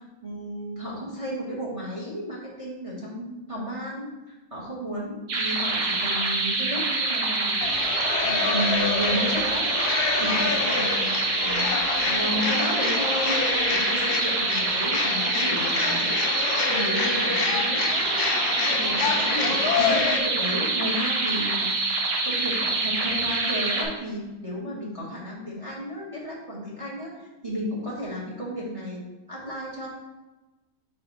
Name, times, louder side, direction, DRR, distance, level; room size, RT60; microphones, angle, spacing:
voice 1, 0.2-7.7 8.2-9.7 10.2-11.1 11.4-11.7 12.0-16.2 16.7-18.3 18.7-21.7 22.2-29.0 29.3-29.9, equal, 20° right, -5 dB, 1.3 m, -33 dB
sound 1, 5.3-23.8, right 3 dB, 65° right, 1.5 m, -26 dB
sound 2, 7.6-20.2, left 5 dB, 70° left, 1.1 m, -28 dB
5.5 x 4.5 x 3.9 m, 1.1 s
omnidirectional pair, 2.1 m